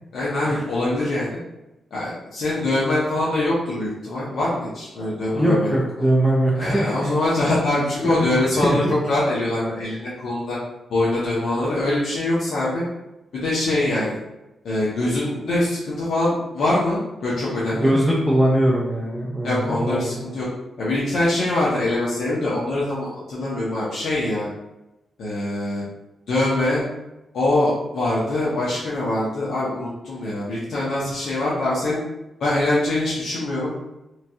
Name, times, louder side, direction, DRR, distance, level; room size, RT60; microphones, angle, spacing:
voice 1, 0.1-1.3 1.9-5.7 6.5-10.6 10.9-12.8 13.3-14.2 14.6-17.9 19.4-20.5 20.8-24.5 25.2-25.8 26.3-26.8 27.3-32.0 32.4-33.9, left 2 dB, 65° left, -8 dB, 0.7 m, -23 dB
voice 2, 5.3-6.9 8.0-8.3 8.6-8.9 17.7-20.1, right 1 dB, ahead, -4 dB, 0.4 m, -21 dB
3.1 x 2.3 x 2.6 m, 0.96 s
wide cardioid pair, 175°, 0 cm